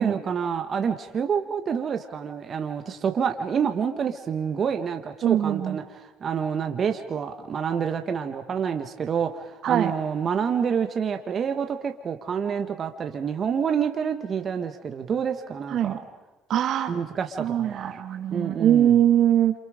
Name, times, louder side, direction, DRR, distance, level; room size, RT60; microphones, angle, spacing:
voice 1, 0.0-5.8 6.2-16.0 16.9-17.9 18.3-19.0, right 7 dB, 45° right, 6 dB, 1.5 m, -28 dB
voice 2, 5.2-5.8 9.6-9.9 15.7-16.0 16.5-16.9 17.4-19.5, right 10 dB, 60° right, 8 dB, 1.6 m, -22 dB
28.0 x 27.0 x 5.1 m, 1.1 s
supercardioid pair, 85°, 0 cm